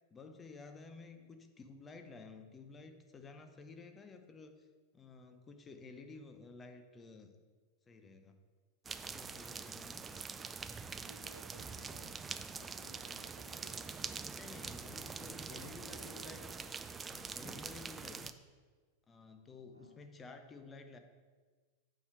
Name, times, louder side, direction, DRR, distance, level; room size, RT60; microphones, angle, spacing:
voice 1, 0.1-4.7 4.9-7.3 7.9-8.4 9.0-10.2 14.3-16.6 17.1-18.4 19.1-21.0, left 4 dB, 20° left, 6 dB, 0.7 m, -53 dB
sound 1, 8.8-18.3, right 5 dB, 15° right, 0.3 m, -45 dB
voice 2, 11.1-12.2 12.5-13.9 15.4-16.4 19.7-20.0, right 1 dB, 85° right, 1 dB, 0.6 m, -58 dB
8.7 x 4.7 x 4.6 m, 1.4 s
figure-of-eight pair, 90°, 0 cm